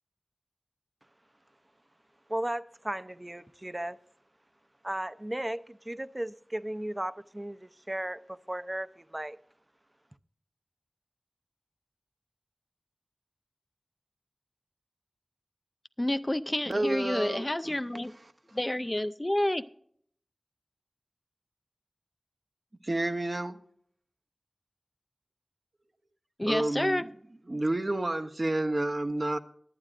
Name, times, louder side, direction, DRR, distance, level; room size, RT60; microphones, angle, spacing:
voice 1, 2.3-4.0 4.8-9.4, right 1 dB, 25° right, 0.6 m, -35 dB
voice 2, 16.0-18.1 18.5-19.7 26.4-27.0, left 1 dB, 25° left, 0.4 m, -29 dB
voice 3, 16.7-17.7 22.8-23.6 26.4-27.0 27.5-29.4, right 2 dB, 50° right, 0.8 m, -30 dB
23.0 x 8.7 x 2.5 m
wide cardioid pair, 40°, 0 cm